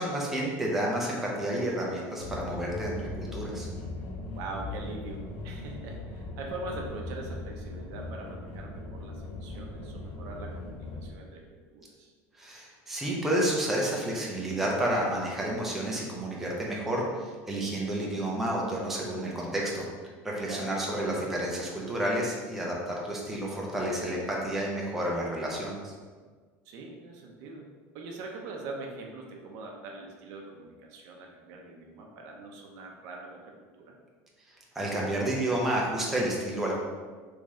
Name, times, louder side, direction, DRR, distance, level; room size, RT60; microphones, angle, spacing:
voice 1, 0.0-3.7 12.3-19.9 20.2-25.9 34.7-36.8, right 1 dB, 5° right, -4 dB, 0.5 m, -30 dB
sound 1, 2.2-11.1, left 2 dB, 55° left, 0.6 m, -39 dB
voice 2, 4.3-12.1 20.4-20.7 26.6-34.0, right 2 dB, 55° right, 1 dB, 0.5 m, -42 dB
3.1 x 2.6 x 3.5 m, 1.5 s
cardioid pair, 160°, 7 cm